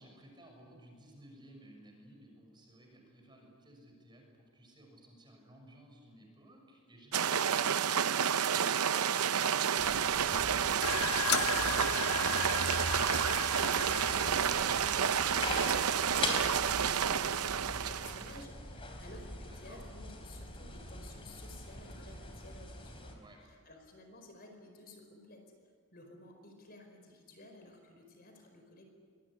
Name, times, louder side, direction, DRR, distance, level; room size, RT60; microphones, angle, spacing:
voice 1, 0.0-11.1 19.5-19.8 23.1-23.4, right 1 dB, 20° right, 1 dB, 6.4 m, -57 dB
sound 1, 7.1-18.4, right 8 dB, 85° right, 0.7 m, -30 dB
sound 2, 9.8-23.1, left 2 dB, 25° left, 3.7 m, -43 dB
sound 3, 10.8-15.9, left 8 dB, 85° left, 1.4 m, -37 dB
voice 2, 13.8-23.1 23.7-25.4 25.9-28.9, left 1 dB, 45° left, 4 dB, 4.7 m, -53 dB
25.0 x 21.5 x 9.9 m, 2.1 s
head